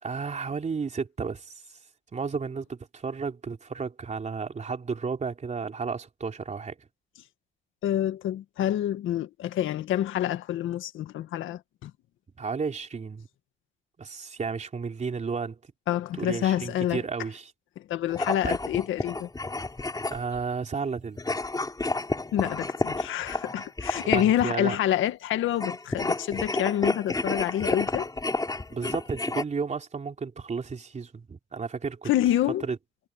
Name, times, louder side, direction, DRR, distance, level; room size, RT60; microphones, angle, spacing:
voice 1, 0.0-1.5 2.1-6.8 12.4-13.3 14.0-15.6 16.1-17.5 18.4-18.6 20.1-21.4 24.0-24.8 28.7-32.1 32.6-32.8, right 5 dB, 35° right, 3.4 m, -32 dB
voice 2, 7.8-11.9 15.9-17.0 17.8-19.3 22.3-28.1 32.1-32.6, left 12 dB, 80° left, 1.7 m, -27 dB
sound 1, 18.1-20.4 21.2-24.4 25.5-29.4, left 2 dB, 20° left, 4.9 m, -30 dB
cardioid pair, 90°, 20 cm